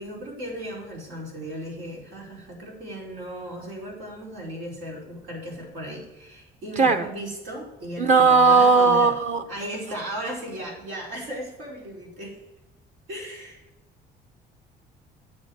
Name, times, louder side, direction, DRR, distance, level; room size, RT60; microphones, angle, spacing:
voice 1, 0.0-9.1 9.5-12.4 13.1-13.6, equal, 90° right, -3 dB, 4.9 m, -36 dB
voice 2, 6.8-7.1 8.0-9.4, right 4 dB, 45° right, 6 dB, 1.2 m, -17 dB
10.0 x 7.1 x 6.4 m, 0.97 s
cardioid pair, 110°, 17 cm